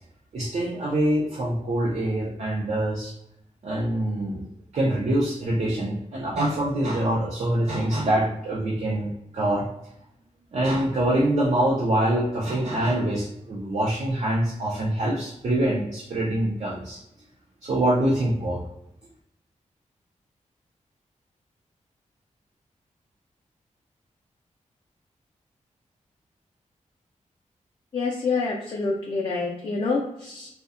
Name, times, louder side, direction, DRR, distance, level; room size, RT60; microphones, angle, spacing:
voice 1, 0.3-3.1 3.6-4.5 4.7-9.1 9.3-9.7 10.5-17.0 17.6-18.6, right 1 dB, 55° right, -5 dB, 0.5 m, -24 dB
voice 2, 27.9-30.6, left 4 dB, 40° left, -3 dB, 0.4 m, -27 dB
2.6 x 2.1 x 2.4 m, 0.79 s
wide cardioid pair, 170°, 13 cm